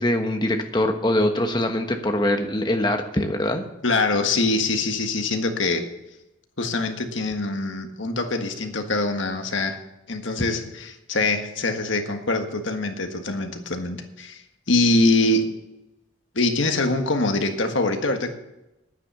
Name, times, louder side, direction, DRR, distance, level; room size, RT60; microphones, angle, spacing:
voice 1, 0.0-3.6, left 1 dB, 20° left, 5 dB, 1.2 m, -23 dB
voice 2, 3.8-5.8 6.6-9.8 10.1-14.4 14.7-15.5 16.3-18.3, left 2 dB, 75° left, 5 dB, 1.6 m, -24 dB
10.0 x 9.5 x 7.0 m, 0.92 s
head